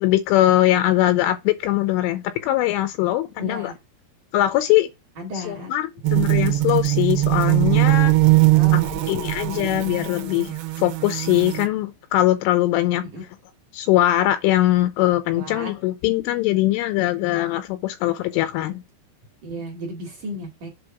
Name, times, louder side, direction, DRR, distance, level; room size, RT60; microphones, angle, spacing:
voice 1, 0.0-3.7 4.3-4.9 5.3-8.1 8.7-13.0 13.7-18.8, left 15 dB, 80° left, 3.0 m, -21 dB
voice 2, 3.4-3.8 5.2-5.7 8.5-8.9 13.1-13.2 15.4-15.7 19.4-20.7, equal, 55° right, 2.5 m, -34 dB
sound 1, 6.0-11.7, right 18 dB, 75° right, 2.6 m, -20 dB
8.0 x 3.0 x 5.7 m
omnidirectional pair, 5.9 m